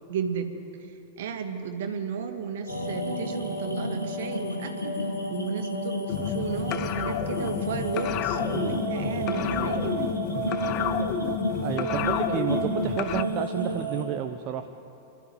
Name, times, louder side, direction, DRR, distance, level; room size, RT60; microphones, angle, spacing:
voice 1, 0.1-0.6 1.2-4.9 5.3-10.1, right 6 dB, 60° right, 6 dB, 2.2 m, -33 dB
sound 1, 2.7-14.0, right 1 dB, 80° left, 3.4 m, -31 dB
sound 2, 6.1-13.2, left 11 dB, 40° left, 0.8 m, -31 dB
voice 2, 11.6-14.7, right 9 dB, 40° right, 7 dB, 0.9 m, -30 dB
26.0 x 13.0 x 9.3 m, 2.8 s
figure-of-eight pair, 90°, 0 cm